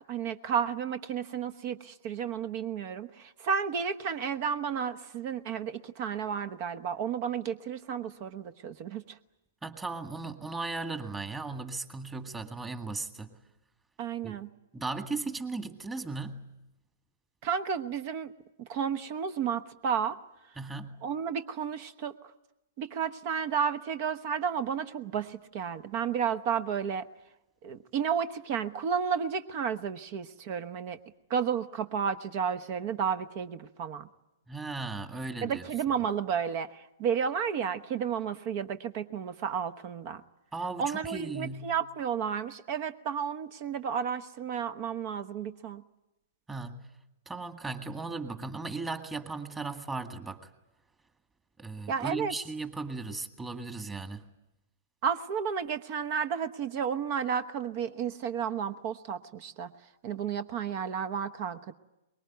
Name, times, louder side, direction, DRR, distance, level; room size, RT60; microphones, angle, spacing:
voice 1, 0.1-9.2 14.0-14.5 17.4-18.3 18.7-20.2 21.0-22.1 22.8-27.0 27.6-31.0 31.3-34.1 35.4-40.2 40.8-45.8 51.9-52.3 55.0-59.7 60.0-61.7, right 7 dB, 40° right, 11 dB, 1.1 m, -32 dB
voice 2, 9.6-13.4 14.2-14.4 14.7-16.5 20.6-21.0 34.5-35.6 40.5-41.7 46.5-46.8 47.3-50.5 51.6-54.2, right 3 dB, 10° right, 7 dB, 1.9 m, -37 dB
24.0 x 21.5 x 9.4 m, 0.94 s
figure-of-eight pair, 110°, 0 cm